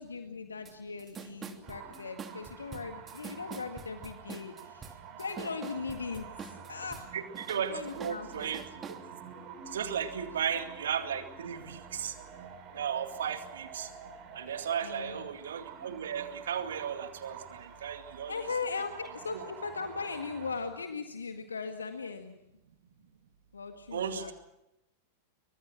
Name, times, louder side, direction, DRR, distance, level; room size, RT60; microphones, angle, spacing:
voice 1, 0.0-7.1 7.5-8.5 14.8-15.3 18.3-22.3 23.5-24.3, left 4 dB, 75° left, 6 dB, 1.8 m, -39 dB
sound 1, 0.6-0.7 1.0-7.1 7.3-9.0, right 5 dB, 20° right, 3.0 m, -45 dB
sound 2, 1.6-20.6, right 7 dB, 40° right, 5.8 m, -49 dB
voice 2, 7.1-9.0 9.7-12.2 12.7-13.9 14.3-18.4 19.3-19.4 23.9-24.3, right 8 dB, 65° right, 8 dB, 2.3 m, -35 dB
27.5 x 24.5 x 6.2 m, 0.87 s
figure-of-eight pair, 90°, 0 cm